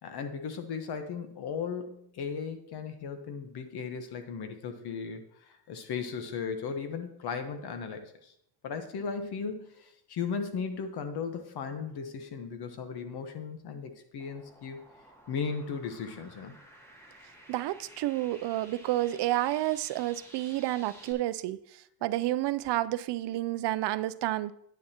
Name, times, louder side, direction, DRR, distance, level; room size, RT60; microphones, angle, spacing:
voice 1, 0.0-8.3 8.6-14.8 15.3-16.6, left 6 dB, 70° left, 7 dB, 1.1 m, -36 dB
sound 1, 14.2-21.1, right 1 dB, 5° left, 1.5 m, -54 dB
voice 2, 17.5-21.6 22.0-24.5, right 15 dB, 80° right, 16 dB, 0.5 m, -30 dB
9.6 x 9.0 x 2.9 m, 0.72 s
cardioid pair, 140°, 40 cm